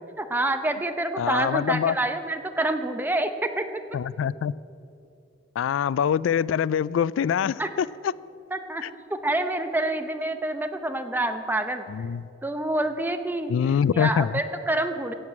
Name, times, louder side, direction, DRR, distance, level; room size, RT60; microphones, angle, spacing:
voice 1, 0.2-3.7 7.6-7.7 8.5-8.8 9.1-11.9 12.4-13.5 13.9-15.1, right 2 dB, 10° right, 7 dB, 0.8 m, -27 dB
voice 2, 1.2-1.9 3.9-4.5 5.6-8.1 11.9-12.2 13.5-14.3, left 8 dB, 85° left, 21 dB, 0.3 m, -24 dB
15.0 x 7.7 x 8.7 m, 2.5 s
head